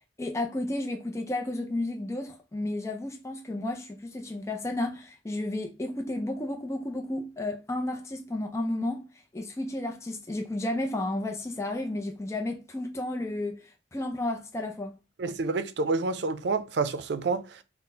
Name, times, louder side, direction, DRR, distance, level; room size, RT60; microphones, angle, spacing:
voice 1, 0.2-9.1 9.3-14.9, left 1 dB, 15° left, 0.5 m, -32 dB
voice 2, 15.2-17.6, right 3 dB, 75° right, 0.5 m, -28 dB
4.2 x 2.1 x 4.0 m
head